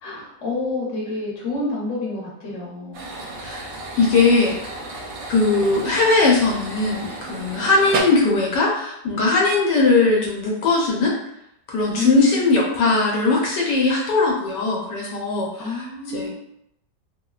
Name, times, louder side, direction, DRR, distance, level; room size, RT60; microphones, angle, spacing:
voice 1, 0.0-3.0 11.9-12.9 15.6-16.4, left 3 dB, 50° left, -4 dB, 1.1 m, -28 dB
sound 1, 2.9-8.0, right 2 dB, 65° right, 0.9 m, -33 dB
voice 2, 4.0-4.7 5.3-11.2 11.7-15.8 16.1-16.4, left 3 dB, 80° left, -2 dB, 1.2 m, -19 dB
3.3 x 2.1 x 2.3 m, 0.78 s
omnidirectional pair, 1.9 m